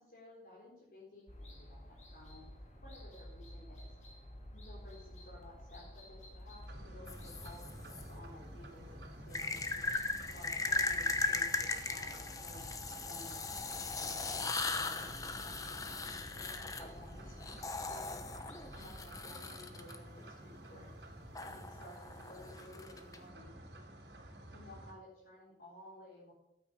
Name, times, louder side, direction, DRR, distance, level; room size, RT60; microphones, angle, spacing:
voice 1, 0.0-2.5 2.8-3.9 4.5-9.9 10.3-15.9 16.3-17.6 17.9-18.2 18.7-21.0 21.4-23.5 24.5-26.3, left 1 dB, 55° left, -8 dB, 4.3 m, -55 dB
sound 1, 1.3-19.2, left 1 dB, 40° left, 2.8 m, -53 dB
sound 2, 6.7-24.9, right 1 dB, 75° right, 4.2 m, -52 dB
sound 3, 7.1-8.0 9.3-20.0 21.4-23.2, left 3 dB, 20° left, 1.0 m, -38 dB
13.0 x 9.1 x 6.4 m, 0.86 s
head